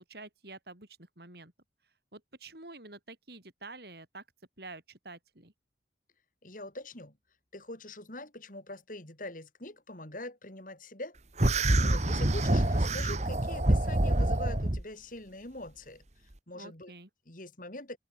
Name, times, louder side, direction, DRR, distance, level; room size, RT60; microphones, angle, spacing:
voice 1, 0.0-1.5 2.1-4.2 4.6-5.5 16.5-17.1, right 2 dB, 55° right, 5.1 m, -48 dB
voice 2, 6.4-7.2 7.5-11.2 11.8-16.0 16.5-16.9 17.3-18.0, left 2 dB, 45° left, 4.2 m, -43 dB
sound 1, 11.4-14.8, right 1 dB, 40° right, 1.7 m, -26 dB
head